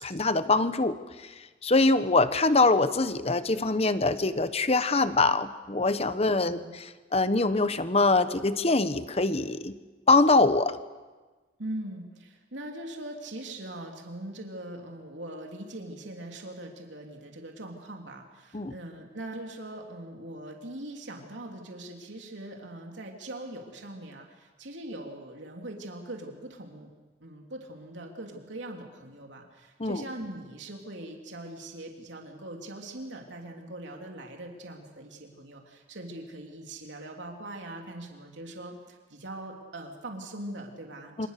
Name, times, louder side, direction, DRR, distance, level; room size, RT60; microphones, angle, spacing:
voice 1, 0.0-1.0 1.2-1.3 1.6-6.6 7.1-9.7 10.1-10.8 18.5-18.7 29.8-30.0 41.2-41.3, left 3 dB, 35° left, 12 dB, 1.1 m, -23 dB
voice 2, 11.6-26.9 27.2-41.3, right 1 dB, 80° right, 2 dB, 3.2 m, -41 dB
27.0 x 25.5 x 6.7 m, 1.3 s
head